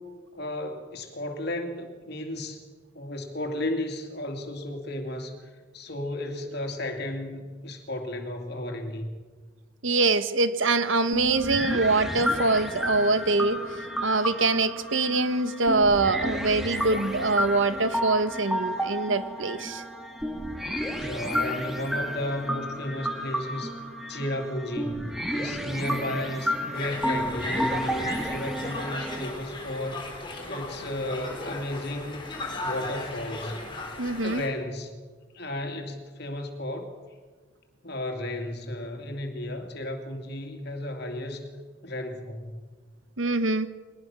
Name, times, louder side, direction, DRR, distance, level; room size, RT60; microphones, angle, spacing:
voice 1, 0.3-2.6 2.9-9.1 20.9-23.7 24.1-32.2 32.6-33.6 34.2-34.9 35.3-37.0 37.8-41.5 41.8-42.7, left 1 dB, 55° left, 5 dB, 2.7 m, -34 dB
voice 2, 9.8-19.8 34.0-34.4 43.2-43.7, right 3 dB, 75° right, 12 dB, 1.3 m, -24 dB
sound 1, 11.1-29.3, equal, ahead, 2.1 m, -31 dB
Conversation, 26.7-34.5, left 2 dB, 25° left, 3.8 m, -36 dB
22.0 x 19.0 x 6.1 m, 1.4 s
head